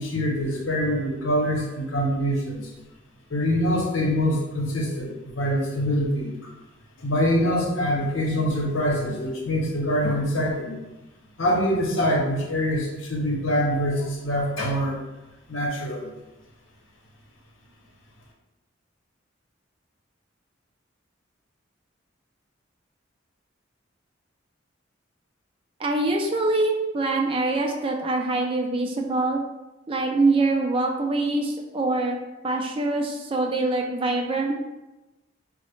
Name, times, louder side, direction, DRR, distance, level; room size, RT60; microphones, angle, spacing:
voice 1, 0.0-2.7 3.3-6.5 7.0-10.8 11.4-14.9 15.5-16.1, equal, 85° left, -1 dB, 0.8 m, -24 dB
voice 2, 25.8-29.4 29.9-32.2 32.4-34.6, right 2 dB, 30° right, 2 dB, 0.3 m, -24 dB
3.8 x 2.0 x 3.1 m, 1.0 s
head